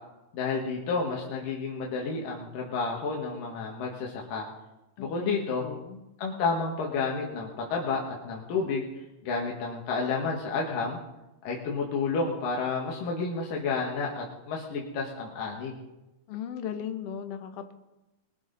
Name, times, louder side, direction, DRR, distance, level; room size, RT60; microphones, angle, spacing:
voice 1, 0.3-4.4 5.0-5.6 6.2-8.9 9.2-11.0 11.4-15.7, left 4 dB, 85° left, -2 dB, 3.3 m, -30 dB
voice 2, 5.0-6.0 16.3-17.7, left 8 dB, 65° left, 7 dB, 1.7 m, -37 dB
22.0 x 12.0 x 4.1 m, 1.0 s
omnidirectional pair, 3.8 m